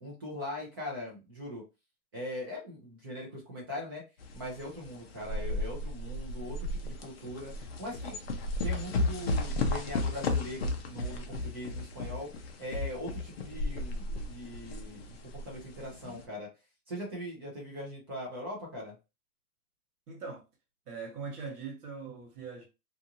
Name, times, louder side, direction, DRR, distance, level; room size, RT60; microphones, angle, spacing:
voice 1, 0.0-1.6 2.1-4.0 4.3-8.2 8.6-12.3 12.6-16.5 16.9-19.0, left 1 dB, 15° right, 0.5 m, -41 dB
sound 1, 4.2-16.2, left 2 dB, 45° left, 0.5 m, -34 dB
voice 2, 20.1-20.4 20.9-22.7, right 5 dB, 85° right, 1.3 m, -41 dB
2.5 x 2.5 x 2.8 m
hypercardioid pair, 165°, 45 cm